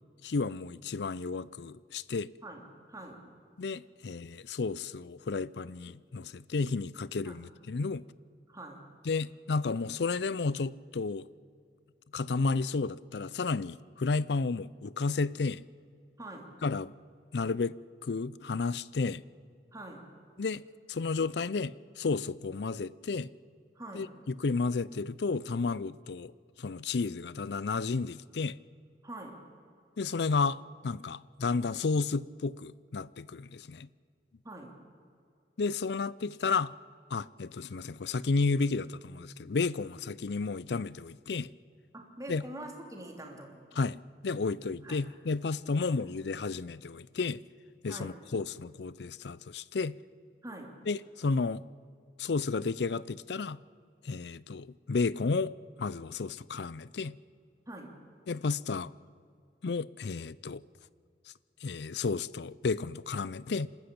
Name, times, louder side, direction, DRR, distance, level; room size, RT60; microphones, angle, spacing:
voice 1, 0.2-2.3 3.6-8.0 9.1-11.3 12.1-15.6 16.6-16.9 17.3-17.8 18.0-19.2 20.4-20.6 20.9-23.3 23.9-26.3 26.6-28.6 30.0-33.9 35.6-36.7 37.1-41.5 42.3-42.4 43.8-47.4 47.8-49.9 50.9-51.6 52.2-53.6 54.0-57.1 58.3-58.9 59.6-60.6 61.6-63.7, left 4 dB, 70° left, 0.5 m, -32 dB
voice 2, 2.4-3.2 7.2-7.4 8.5-8.8 16.2-16.5 19.7-20.1 23.7-24.1 29.0-29.4 34.4-34.7 41.9-43.7 44.4-45.0 45.8-45.9 47.9-48.2 50.4-50.7 57.7-58.0, right 1 dB, 20° right, 3.2 m, -45 dB
27.0 x 13.0 x 8.6 m
head